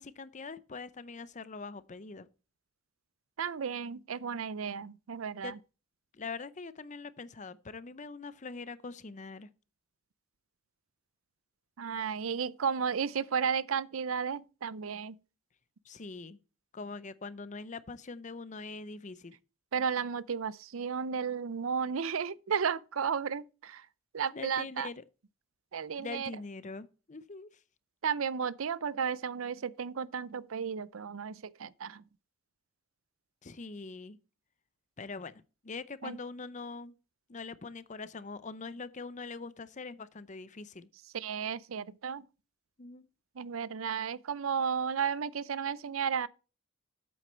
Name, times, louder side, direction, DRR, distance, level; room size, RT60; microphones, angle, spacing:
voice 1, 0.0-2.3 5.4-5.5 6.1-9.5 15.8-16.4 16.7-19.4 24.3-25.0 26.0-27.5 33.4-34.2 35.0-36.9 37.3-40.9 42.8-43.1, left 4 dB, 35° left, 0.6 m, -43 dB
voice 2, 3.4-5.6 11.8-15.2 19.7-23.9 24.1-24.9 25.7-26.3 28.0-32.0 36.0-36.2 41.1-42.2 43.4-46.3, right 6 dB, 75° right, 0.5 m, -33 dB
8.7 x 8.3 x 4.4 m
head